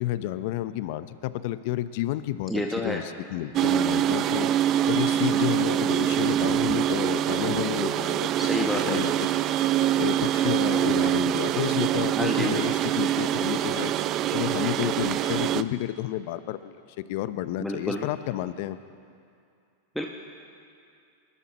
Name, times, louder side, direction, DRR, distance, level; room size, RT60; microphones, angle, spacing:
voice 1, 0.0-4.5 4.9-8.3 8.6-9.1 10.0-13.9 14.3-16.8 17.1-18.8, left 14 dB, 60° left, 14 dB, 0.6 m, -30 dB
voice 2, 2.5-3.0 8.4-9.0 12.1-12.5 17.6-18.1 19.9-20.1, left 1 dB, ahead, 1 dB, 1.0 m, -29 dB
sound 1, 3.5-15.6, right 11 dB, 40° right, 0.4 m, -24 dB
21.0 x 12.5 x 4.2 m, 2.5 s
hypercardioid pair, 105°, 0 cm